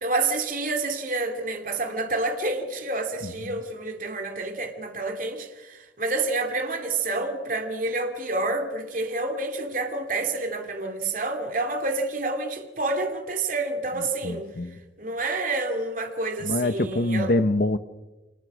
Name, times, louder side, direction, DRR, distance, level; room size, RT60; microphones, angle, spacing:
voice 1, 0.0-17.3, right 2 dB, 45° right, 2.8 m, -28 dB
voice 2, 3.2-3.6 14.2-14.7 16.4-17.8, left 2 dB, 55° left, 0.9 m, -25 dB
30.0 x 26.0 x 6.3 m
head